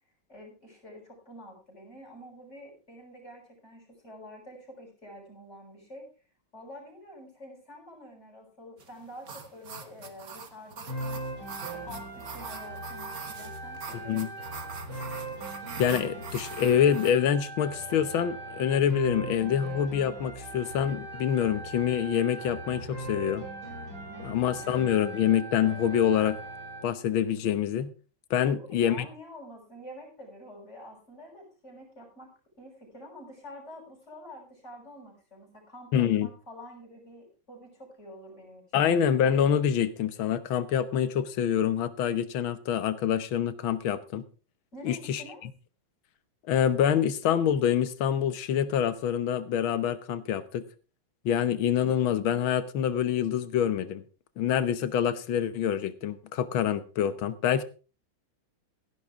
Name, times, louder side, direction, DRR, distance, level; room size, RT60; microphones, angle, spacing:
voice 1, 0.3-6.1 6.5-11.2 11.7-14.3 24.1-24.9 28.4-32.3 32.6-38.9 44.7-45.4, left 1 dB, 35° left, -1 dB, 6.6 m, -47 dB
sound 1, 8.8-17.1, right 6 dB, 50° right, 1.8 m, -43 dB
sound 2, 10.9-26.9, right 2 dB, 80° right, 6.8 m, -39 dB
voice 2, 15.8-23.5 24.2-26.4 26.8-27.9 28.3-29.1 35.9-36.3 38.7-44.2 44.8-45.2 46.5-50.6 51.3-54.0 54.4-57.6, left 9 dB, 85° left, 13 dB, 1.8 m, -26 dB
16.0 x 11.0 x 3.6 m, 0.36 s
omnidirectional pair, 2.1 m